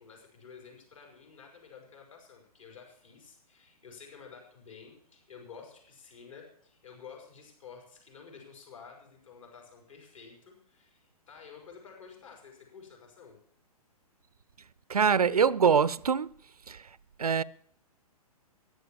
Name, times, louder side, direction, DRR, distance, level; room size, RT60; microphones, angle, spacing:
voice 1, 0.0-13.4, left 6 dB, 55° left, 5.8 m, -51 dB
voice 2, 14.9-16.3 16.7-16.9 17.2-17.4, right 6 dB, 70° right, 0.5 m, -24 dB
14.5 x 10.5 x 7.1 m
figure-of-eight pair, 120°, 20 cm